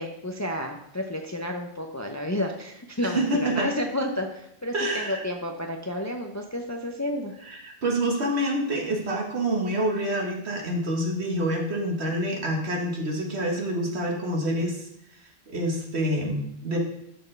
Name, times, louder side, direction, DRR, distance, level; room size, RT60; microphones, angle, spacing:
voice 1, 0.0-7.3, left 1 dB, 25° left, 3 dB, 0.4 m, -31 dB
voice 2, 3.0-3.7 4.7-5.2 7.4-14.9 15.5-16.8, right 1 dB, 75° right, 0 dB, 1.6 m, -27 dB
11.5 x 4.5 x 3.3 m, 0.77 s
omnidirectional pair, 1.1 m